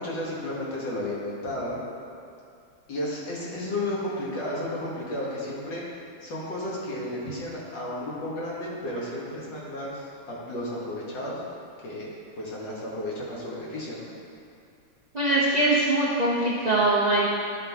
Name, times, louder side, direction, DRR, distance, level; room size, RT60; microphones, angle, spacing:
voice 1, 0.0-1.8 2.9-5.8 6.2-11.4 11.8-12.1 12.4-14.1, left 1 dB, 65° left, -6 dB, 2.2 m, -33 dB
voice 2, 15.1-17.3, right 2 dB, 90° right, -7 dB, 0.3 m, -22 dB
11.0 x 4.6 x 3.5 m, 2.5 s
omnidirectional pair, 2.2 m